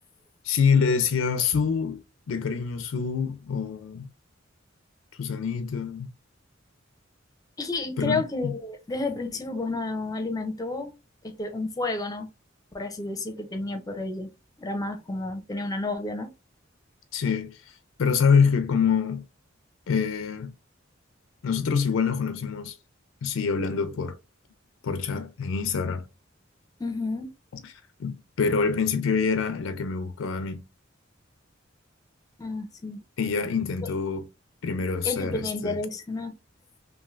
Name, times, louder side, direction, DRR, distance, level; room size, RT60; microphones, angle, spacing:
voice 1, 0.4-4.1 5.1-6.1 8.0-8.6 17.1-19.2 19.9-20.5 21.4-22.8 23.2-24.2 24.8-26.0 27.5-27.7 28.0-30.6 33.2-34.3 34.6-35.8, left 5 dB, 85° left, 0.4 m, -26 dB
voice 2, 7.6-10.9 11.2-12.3 12.7-14.3 14.6-16.3 26.8-27.3 32.4-33.0 33.8-33.9 35.0-36.3, left 3 dB, 20° left, 0.5 m, -31 dB
3.1 x 2.5 x 2.4 m
head